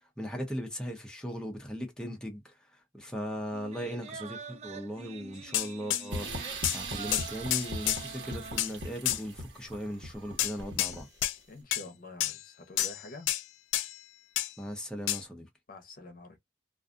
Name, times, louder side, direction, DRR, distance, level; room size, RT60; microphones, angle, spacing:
voice 1, 0.2-2.5 2.9-11.1 14.6-15.5, equal, 5° left, 0.7 m, -38 dB
sound 1, 3.5-9.2 9.5-9.6, right 5 dB, 35° right, 0.3 m, -46 dB
sound 2, 5.5-6.1 6.6-6.8 7.1-8.0 8.6-8.7 9.1-9.2 10.4-11.0 11.2-11.4 11.7-11.8 12.2-12.4 12.8-13.0 13.3-13.4 13.7-14.0 14.4-14.5 15.1-15.2, left 13 dB, 90° left, 0.3 m, -29 dB
sound 3, 6.1-11.3, right 1 dB, 70° right, 1.2 m, -39 dB
voice 2, 11.5-13.3 15.7-16.4, left 2 dB, 50° left, 0.8 m, -47 dB
2.5 x 2.3 x 2.5 m
head